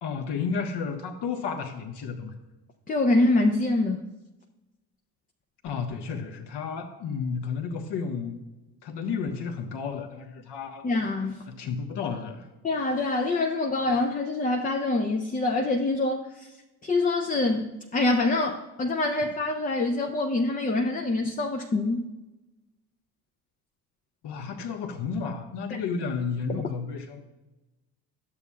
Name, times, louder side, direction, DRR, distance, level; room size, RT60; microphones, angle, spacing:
voice 1, 0.0-2.3 5.6-8.4 8.8-10.9 11.5-12.5 24.2-27.2, left 5 dB, 55° left, 5 dB, 1.2 m, -32 dB
voice 2, 2.9-4.0 10.8-11.4 12.6-16.5 16.8-22.1 25.7-25.8 26.5-26.6, left 2 dB, 15° left, 3 dB, 0.5 m, -25 dB
12.0 x 7.1 x 2.3 m, 1.1 s
hypercardioid pair, 55°, 49 cm